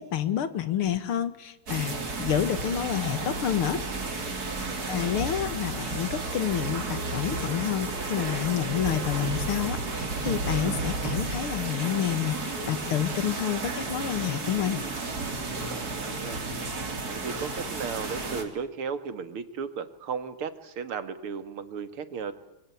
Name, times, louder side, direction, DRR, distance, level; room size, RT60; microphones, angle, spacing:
voice 1, 0.0-1.9 2.2-3.8 4.9-14.8, left 10 dB, 85° left, 14 dB, 2.4 m, -29 dB
sound 1, 1.7-18.4, right 3 dB, 45° right, 3.6 m, -33 dB
voice 2, 4.7-5.2 15.7-16.4 17.1-22.3, right 6 dB, 85° right, 12 dB, 2.6 m, -35 dB
sound 2, 6.6-11.8 13.0-17.9, right 2 dB, 70° right, 3.1 m, -38 dB
26.0 x 22.5 x 9.4 m, 0.89 s
omnidirectional pair, 2.3 m